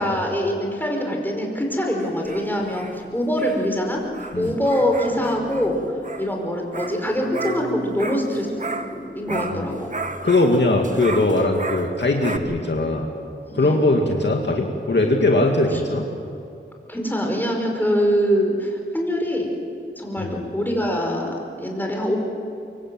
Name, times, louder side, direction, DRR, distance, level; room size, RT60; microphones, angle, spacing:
voice 1, 0.0-4.0 4.4-5.8 6.2-9.9 13.4-13.8 15.7-15.8 16.9-19.5 20.0-22.2, equal, 10° left, 1 dB, 5.2 m, -24 dB
sound 1, 2.0-9.0 9.3-12.4, right 3 dB, 35° right, 1.3 m, -34 dB
voice 2, 9.3-9.7 10.2-13.1 13.5-16.1 20.2-20.4, left 2 dB, 55° left, 1 dB, 2.3 m, -20 dB
25.0 x 23.5 x 7.8 m, 2.5 s
wide cardioid pair, 75°, 21 cm